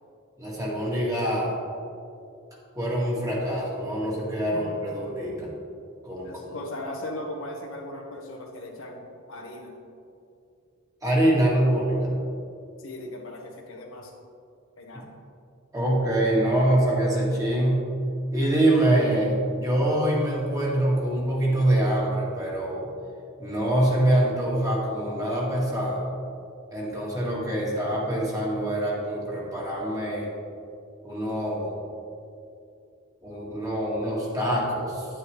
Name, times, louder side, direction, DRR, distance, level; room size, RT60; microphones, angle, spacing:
voice 1, 0.4-1.5 2.8-5.5 6.0-6.6 11.0-12.1 15.7-17.8 18.3-22.8 23.4-26.0 26.7-30.3 31.0-31.7 33.2-35.1, right 1 dB, 15° right, -5 dB, 2.0 m, -24 dB
voice 2, 6.2-9.8 12.8-14.1 14.8-15.1, left 1 dB, 70° left, 0 dB, 1.3 m, -38 dB
9.7 x 9.6 x 3.2 m, 2.6 s
head